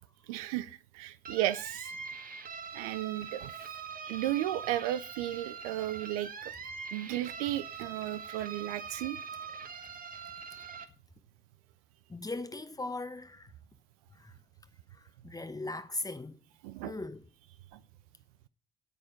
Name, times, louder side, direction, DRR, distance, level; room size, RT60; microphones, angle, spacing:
voice 1, 0.3-1.9 2.7-3.5 4.0-6.5 6.8-9.2 16.6-17.0 17.7-17.8, right 14 dB, 90° right, 0.4 m, -34 dB
sound 1, 1.2-10.8, right 6 dB, 50° right, 1.4 m, -43 dB
voice 2, 12.1-13.5 14.2-14.3 15.2-16.4 16.8-17.2, left 2 dB, 20° left, 0.9 m, -38 dB
9.0 x 8.2 x 5.0 m
hypercardioid pair, 45°, 18 cm